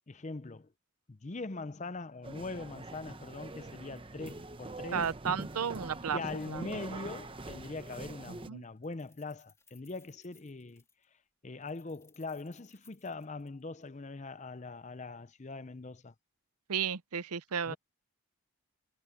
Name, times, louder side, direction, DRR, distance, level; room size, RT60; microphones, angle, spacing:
voice 1, 0.1-0.7 1.1-5.1 6.1-10.8 11.4-16.1 17.7-17.8, left 3 dB, 30° left, 0.6 m, -42 dB
sound 1, 2.2-8.5, right 2 dB, 25° right, 0.8 m, -44 dB
voice 2, 4.9-6.2 6.5-6.6 6.9-7.0 8.3-8.6 16.7-17.8, right 7 dB, 85° right, 0.6 m, -33 dB
Keys jangling, 7.2-7.3 7.6-8.4 8.6-11.0 11.6-13.9, left 5 dB, 15° left, 3.6 m, -65 dB
head